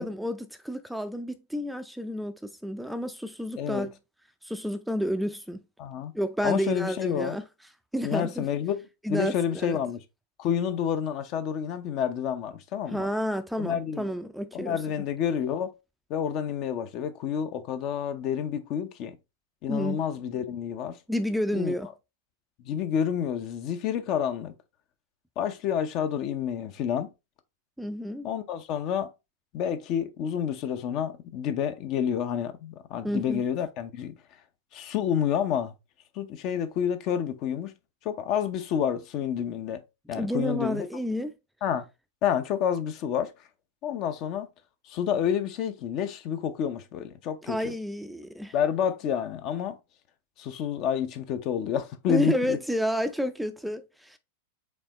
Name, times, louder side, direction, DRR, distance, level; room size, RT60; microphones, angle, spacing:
voice 1, 0.0-3.9 4.4-5.6 6.1-7.4 7.9-8.4 9.0-9.8 12.9-14.8 19.7-20.0 21.1-21.9 27.8-28.3 33.0-33.4 40.1-41.3 47.4-48.5 52.1-54.2, equal, ahead, 0.5 m, -30 dB
voice 2, 3.6-3.9 5.8-6.1 6.4-7.4 8.0-10.0 10.4-13.1 13.6-14.1 14.5-15.7 16.1-19.2 19.6-21.0 21.5-21.7 22.6-24.5 25.4-27.1 28.2-29.1 29.5-34.1 34.7-35.7 36.1-37.7 38.0-39.8 40.1-40.9 41.6-41.8 42.2-43.3 43.8-44.5 44.8-47.7 48.5-49.8 50.4-52.6, left 8 dB, 45° left, 0.7 m, -29 dB
5.3 x 3.4 x 2.9 m
figure-of-eight pair, 95°, 0 cm